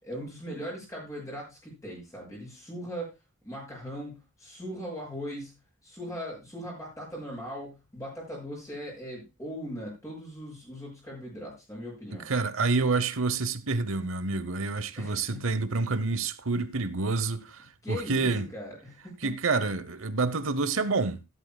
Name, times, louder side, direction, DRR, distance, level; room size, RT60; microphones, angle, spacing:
voice 1, 0.0-3.1 3.4-5.5 5.8-12.3 15.0-15.4 17.8-19.3, equal, 15° left, 6.8 m, -39 dB
voice 2, 12.3-18.5 19.2-21.3, right 3 dB, 65° right, 0.9 m, -28 dB
14.5 x 12.5 x 2.3 m
head